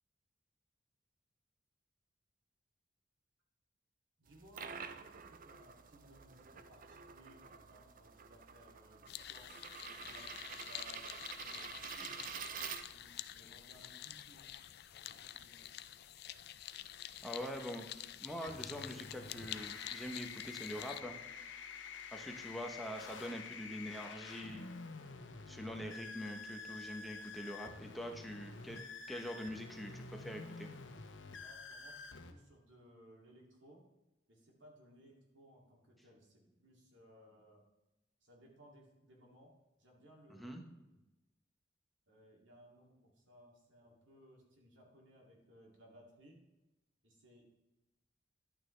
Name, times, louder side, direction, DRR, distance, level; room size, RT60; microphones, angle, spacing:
voice 1, 4.2-9.5 9.9-12.2 12.8-14.5 14.9-15.6 22.1-22.3 31.4-33.8 34.3-37.6 38.2-39.5 39.8-40.6 40.8-41.0 42.1-46.4 47.0-47.5, equal, 80° right, -1 dB, 2.5 m, -62 dB
sound 1, 4.3-13.3, right 7 dB, 50° right, 0.5 m, -48 dB
sound 2, 9.1-21.0, left 12 dB, 60° left, 0.4 m, -48 dB
voice 2, 17.2-21.2 22.1-24.6 25.5-28.8 29.1-30.7 40.4-40.6, equal, ahead, 2 dB, 0.9 m, -44 dB
sound 3, 18.4-32.3, left 4 dB, 85° left, 0.9 m, -49 dB
11.0 x 8.8 x 3.3 m, 0.98 s
head